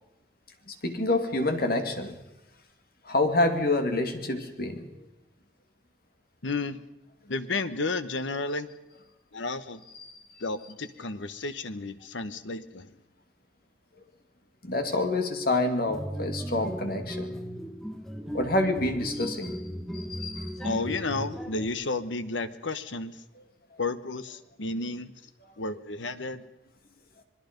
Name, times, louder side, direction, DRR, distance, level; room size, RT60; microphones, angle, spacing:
voice 1, 0.7-2.2 3.0-5.1 9.9-10.1 14.6-17.4 18.3-19.6 19.9-20.7 23.7-23.8, left 2 dB, 50° left, 6 dB, 2.5 m, -28 dB
voice 2, 6.4-6.8 7.3-8.7 9.3-9.8 10.4-12.9 20.6-23.2 23.8-25.1 25.6-26.4, left 3 dB, 80° left, 12 dB, 1.2 m, -32 dB
sound 1, 15.9-21.7, equal, ahead, 1.3 m, -36 dB
26.5 x 21.0 x 5.3 m, 0.91 s
head